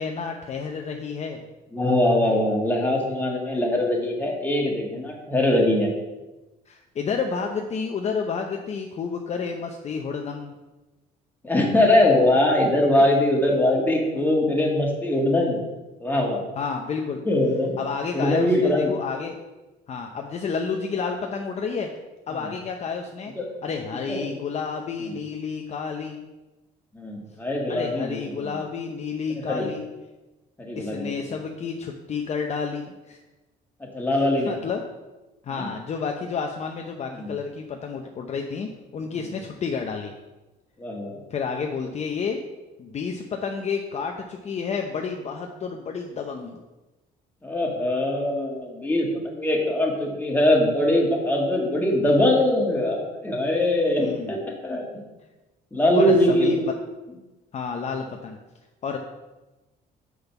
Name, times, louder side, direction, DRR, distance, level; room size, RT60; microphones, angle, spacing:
voice 1, 0.0-1.4 6.7-10.6 16.6-17.2 17.8-19.4 19.9-21.9 22.3-23.3 23.6-26.2 27.7-29.8 30.8-33.2 34.5-34.8 35.4-40.1 41.3-42.4 42.8-46.6 54.0-54.4 55.9-56.6 57.5-58.4 58.8-59.0, left 5 dB, 40° left, 3 dB, 0.7 m, -30 dB
voice 2, 1.7-5.9 11.4-15.6 16.0-16.4 17.3-17.7 18.1-18.9 23.4-23.5 24.1-24.3 26.9-28.6 29.4-29.7 30.6-31.1 33.9-34.5 35.5-35.7 37.1-37.3 40.8-41.1 47.4-55.0 55.7-56.5, left 1 dB, 10° left, -1 dB, 1.8 m, -22 dB
6.3 x 5.2 x 5.8 m, 1.1 s
cardioid pair, 110°, 17 cm